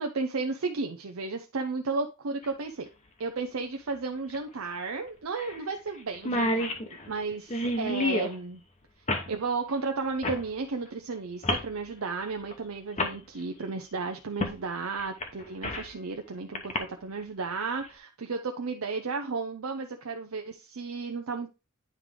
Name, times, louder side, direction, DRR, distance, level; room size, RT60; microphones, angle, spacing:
voice 1, 0.0-2.9 3.2-8.6 9.3-21.5, right 4 dB, 70° right, 0.6 m, -33 dB
sound 1, 2.4-2.5 4.3-4.4 4.7-4.8 5.4-5.6 5.9-6.0 6.1-8.3 9.1-9.3 10.2-10.4 11.4-11.7 12.5-12.6 13.0-13.2 14.4-14.6 15.0-15.9 16.6-16.8, left 1 dB, 30° left, 1.0 m, -29 dB
9.7 x 3.4 x 3.7 m
head